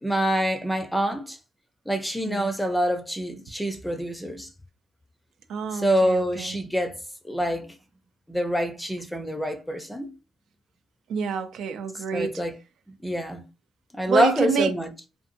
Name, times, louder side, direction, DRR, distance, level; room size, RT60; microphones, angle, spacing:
voice 1, 0.0-1.4 1.9-4.5 5.7-7.0 7.2-7.7 8.3-10.1 12.1-12.5 13.0-13.4 13.9-14.9, equal, 5° left, 0.5 m, -26 dB
voice 2, 5.5-6.6 11.1-12.4 14.1-14.7, right 6 dB, 75° right, 0.4 m, -28 dB
2.6 x 2.3 x 2.6 m
cardioid pair, 90°, 0 cm